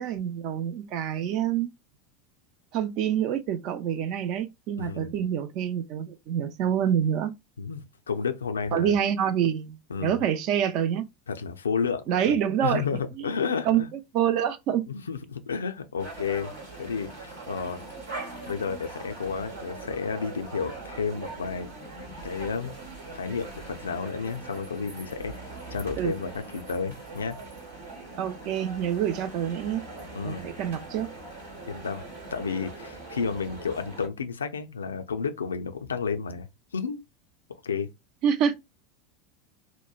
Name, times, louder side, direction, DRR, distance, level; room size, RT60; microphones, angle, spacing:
voice 1, 0.0-1.7 2.7-7.3 8.7-11.1 12.1-12.8 13.2-13.3 13.6-14.9 26.0-26.1 28.2-29.8 30.2-31.1 38.2-38.5, right 9 dB, 50° right, 0.4 m, -27 dB
voice 2, 4.8-5.3 7.6-9.0 9.9-10.2 11.3-13.9 14.9-16.5 16.8-17.8 18.5-21.7 22.2-22.8 23.1-25.3 25.7-27.4 30.1-30.5 31.7-32.0 32.3-36.5 36.7-37.0 37.5-37.9, left 5 dB, 80° left, 0.3 m, -31 dB
sound 1, 16.0-34.1, right 3 dB, 70° right, 1.0 m, -41 dB
2.9 x 2.1 x 2.3 m
figure-of-eight pair, 80°, 0 cm